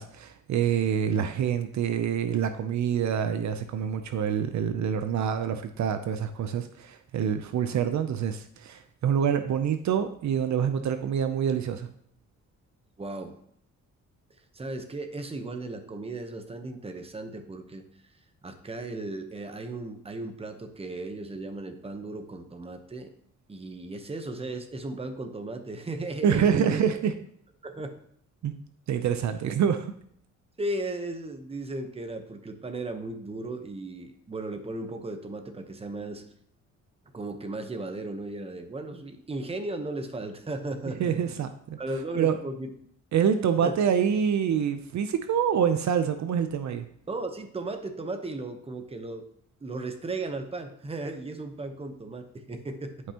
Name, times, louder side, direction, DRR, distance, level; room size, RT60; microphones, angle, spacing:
voice 1, 0.0-11.9 26.2-27.1 28.4-28.5 28.9-29.9 41.0-41.8 42.2-42.4 43.1-46.9, right 8 dB, 65° right, 9 dB, 0.6 m, -26 dB
voice 2, 13.0-13.4 14.5-17.8 18.4-23.1 23.5-26.8 27.6-27.9 30.6-36.2 37.1-41.3 41.8-42.7 43.6-43.8 47.1-49.3 49.6-52.9, right 2 dB, 20° right, 7 dB, 0.9 m, -36 dB
11.0 x 5.4 x 2.9 m, 0.65 s
cardioid pair, 115°, 31 cm